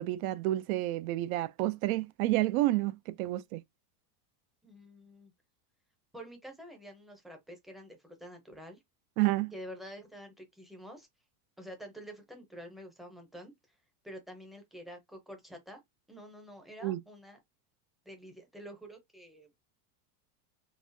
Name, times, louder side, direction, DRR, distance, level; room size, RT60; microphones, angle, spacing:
voice 1, 0.0-3.6 9.2-9.5 16.8-17.0, right 16 dB, 65° right, 0.6 m, -30 dB
voice 2, 4.6-5.3 6.1-8.8 9.5-11.1 11.6-13.5 14.0-15.8 16.1-17.4 18.1-19.6, equal, ahead, 0.6 m, -48 dB
4.0 x 3.5 x 2.6 m
supercardioid pair, 160°, 47 cm